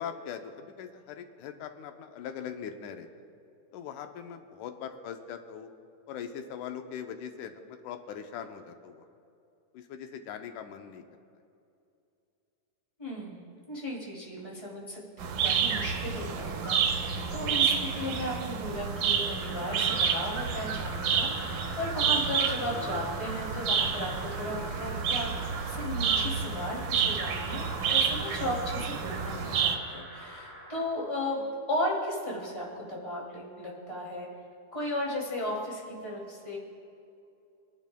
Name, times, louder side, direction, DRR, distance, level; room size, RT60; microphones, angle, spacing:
voice 1, 0.0-3.1 3.7-5.7 6.1-9.1 9.7-11.0 28.8-28.9, left 8 dB, 90° left, 6 dB, 2.2 m, -41 dB
voice 2, 13.0-25.3 25.7-34.3 34.7-36.6, left 1 dB, 10° left, -4 dB, 2.2 m, -35 dB
sound 1, 15.2-29.8, right 6 dB, 85° right, 2.4 m, -29 dB
sound 2, 18.8-30.8, equal, 65° left, 4.7 m, -43 dB
25.0 x 10.5 x 2.2 m, 2.5 s
omnidirectional pair, 3.5 m